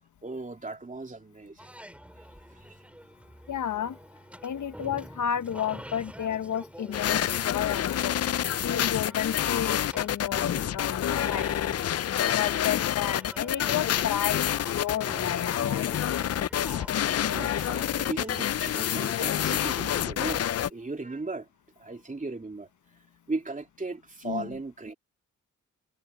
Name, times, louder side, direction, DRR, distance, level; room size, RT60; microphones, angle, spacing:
voice 1, 0.2-1.7 2.2-2.3 2.5-2.8 17.3-21.5 21.8-22.7 23.3-24.9, right 3 dB, 25° right, 2.8 m, -37 dB
sound 1, 1.6-20.1, equal, 5° right, 4.2 m, -47 dB
voice 2, 3.5-4.0 4.4-8.2 8.6-11.6 12.3-15.9 24.2-24.6, left 9 dB, 70° left, 1.0 m, -32 dB
sound 2, 6.9-20.7, left 10 dB, 50° left, 0.5 m, -28 dB
cardioid pair, 65°, 31 cm